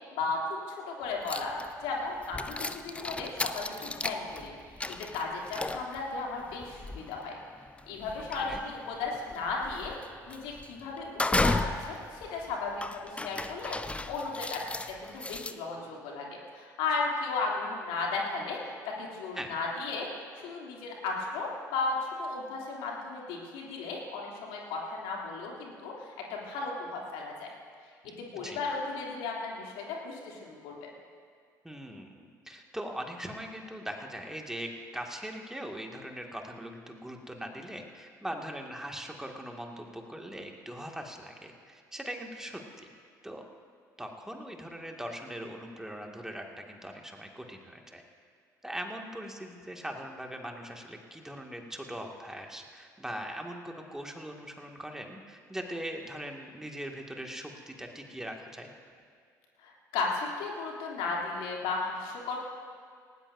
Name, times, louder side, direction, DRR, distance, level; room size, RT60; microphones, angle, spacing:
voice 1, 0.1-1.5 1.8-4.5 5.0-7.4 7.9-10.0 10.3-18.6 19.0-20.1 20.4-27.5 28.0-30.9 59.6-62.4, left 3 dB, 65° left, -2 dB, 3.0 m, -35 dB
sound 1, 1.3-1.9 2.2-15.5, left 2 dB, 10° left, 0.7 m, -35 dB
voice 2, 31.6-42.9 43.2-43.5 44.0-48.0 48.6-58.7, equal, 5° right, 2 dB, 2.1 m, -41 dB
18.5 x 18.5 x 2.7 m, 2.1 s
figure-of-eight pair, 55°, 10 cm